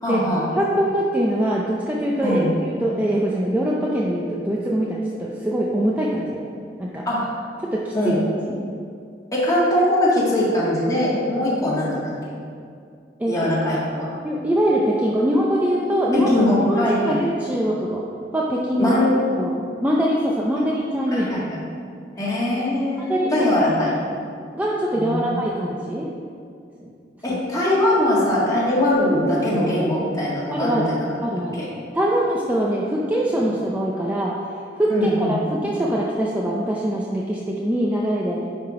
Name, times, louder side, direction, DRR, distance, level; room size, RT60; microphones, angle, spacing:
voice 1, 0.0-0.4 2.2-2.5 7.1-7.3 7.9-8.2 9.3-12.1 13.3-14.1 16.1-17.2 18.8-19.1 21.1-21.6 22.2-24.0 25.0-25.3 27.2-31.0 31.6-31.7 34.9-35.4, left 1 dB, 20° left, -7 dB, 1.9 m, -21 dB
voice 2, 0.6-6.4 6.8-7.1 7.6-8.1 8.4-8.5 11.4-11.5 13.2-13.4 14.2-16.3 16.7-18.0 18.3-19.0 19.4-19.5 19.8-21.5 23.0-23.5 24.5-26.1 26.8-26.9 27.3-27.4 30.5-31.6 31.9-34.4 34.8-38.4, equal, 10° right, -4 dB, 0.5 m, -23 dB
10.5 x 3.7 x 4.9 m, 2.3 s
head